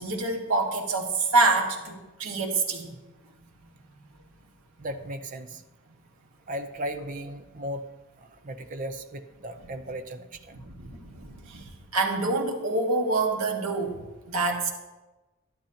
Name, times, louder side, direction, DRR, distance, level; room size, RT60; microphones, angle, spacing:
voice 1, 0.0-2.9 10.6-11.6 11.9-13.9 14.3-14.7, right 3 dB, 85° right, 2 dB, 1.6 m, -26 dB
voice 2, 4.8-5.6 6.5-7.8 8.2-10.6, equal, 40° right, 7 dB, 0.6 m, -36 dB
11.5 x 11.5 x 2.9 m, 1.1 s
head